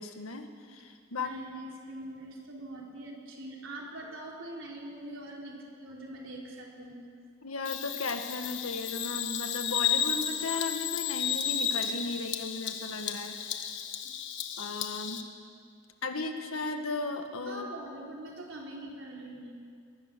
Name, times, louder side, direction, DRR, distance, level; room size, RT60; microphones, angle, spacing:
voice 1, 0.0-1.3 7.4-13.7 14.6-15.2 16.0-17.7, left 3 dB, 85° left, 6 dB, 1.8 m, -36 dB
voice 2, 1.2-7.0 14.0-14.1 17.5-19.6, right 1 dB, 65° right, -1 dB, 4.0 m, -43 dB
Bird vocalization bird call bird song, 7.6-15.2, left 9 dB, 55° left, 1.3 m, -33 dB
21.5 x 19.5 x 6.9 m, 2.2 s
head